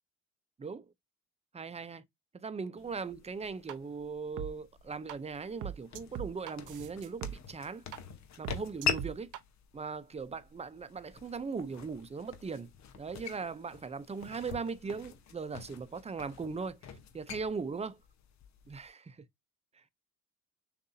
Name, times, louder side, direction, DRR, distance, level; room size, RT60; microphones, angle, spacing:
voice 1, 1.5-2.0 2.3-7.8 8.4-9.3 9.7-12.7 13.0-16.8 17.1-18.0 18.7-19.2, right 5 dB, 20° right, 0.6 m, -39 dB
sound 1, 2.8-18.9, left 7 dB, 65° left, 1.0 m, -43 dB
sound 2, 3.4-3.7 4.4-4.5 5.1-5.2 5.6-7.3 7.9-8.0 8.4-9.4, right 9 dB, 80° right, 0.6 m, -39 dB
6.3 x 2.7 x 2.7 m
cardioid pair, 90°, 30 cm